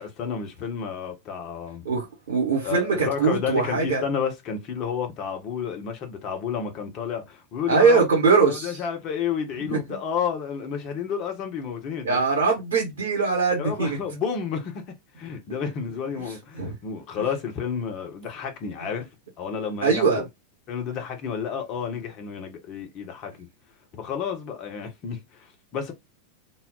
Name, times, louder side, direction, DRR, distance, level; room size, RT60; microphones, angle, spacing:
voice 1, 0.0-1.9 2.6-8.0 8.5-12.2 13.6-14.9 15.2-19.1 19.4-20.0 20.7-23.5 23.9-25.9, left 7 dB, 35° left, 0.8 m, -31 dB
voice 2, 1.8-4.0 7.7-8.8 9.6-10.0 12.0-14.0 16.6-16.7 19.8-20.2, right 4 dB, 70° right, 1.0 m, -22 dB
2.3 x 2.0 x 3.7 m
figure-of-eight pair, 90°, 0 cm